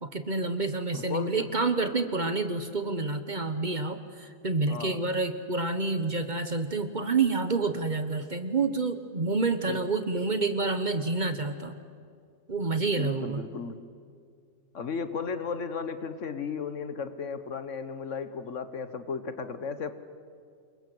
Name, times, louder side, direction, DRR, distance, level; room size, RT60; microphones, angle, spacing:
voice 1, 0.0-11.7 12.5-13.4, right 3 dB, 35° right, 10 dB, 1.3 m, -28 dB
voice 2, 0.9-1.5 4.7-5.0 9.7-9.8 12.9-13.8 14.7-19.9, left 5 dB, 65° left, 11 dB, 1.5 m, -35 dB
27.5 x 23.0 x 7.9 m, 2.2 s
omnidirectional pair, 1.4 m